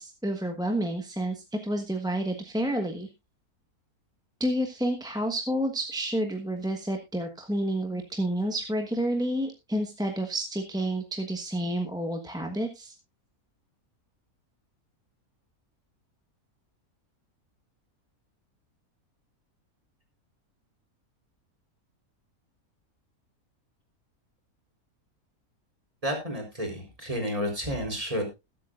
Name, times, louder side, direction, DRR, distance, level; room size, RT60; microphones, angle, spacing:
voice 1, 0.0-3.1 4.4-12.9, right 1 dB, 5° right, 3 dB, 1.2 m, -29 dB
voice 2, 26.0-28.2, equal, 25° right, 2 dB, 4.2 m, -31 dB
21.0 x 8.5 x 2.5 m, 0.25 s
omnidirectional pair, 1.5 m